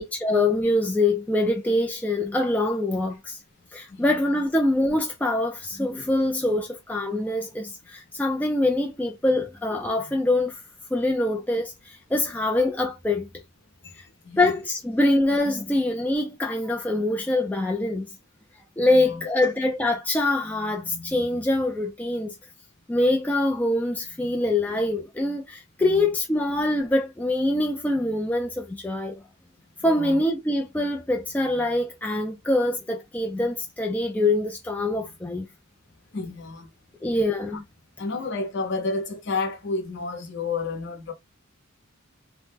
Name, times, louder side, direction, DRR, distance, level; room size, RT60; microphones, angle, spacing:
voice 1, 0.0-3.4 3.7-10.5 10.9-13.3 14.4-18.0 18.8-22.3 22.9-29.2 29.8-35.5 37.0-37.6, left 2 dB, 5° left, 0.3 m, -24 dB
voice 2, 3.6-4.2 13.8-14.5 18.9-19.5 25.8-26.1 29.8-30.2 36.1-36.7 37.5-37.6 38.0-41.1, left 3 dB, 60° left, 0.8 m, -31 dB
3.0 x 2.0 x 3.3 m
head